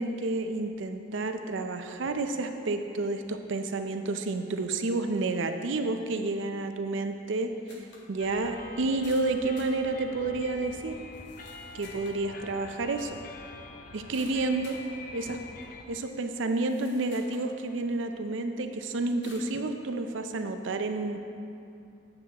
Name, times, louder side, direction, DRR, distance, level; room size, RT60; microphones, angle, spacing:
voice 1, 0.0-7.5 8.1-11.0 11.7-13.2 13.9-14.8 15.1-15.4 15.9-21.2, right 2 dB, 75° right, 7 dB, 0.5 m, -30 dB
sound 1, 7.7-8.1 8.5-8.6 9.0-9.8 10.5-10.6 11.1-12.2 14.1-14.9 15.6-15.7 16.3-17.5 18.0-18.1 19.2-19.5, left 2 dB, 65° left, 1.2 m, -52 dB
sound 2, 8.2-15.8, left 3 dB, 45° left, 0.5 m, -45 dB
9.6 x 7.4 x 3.0 m, 2.6 s
head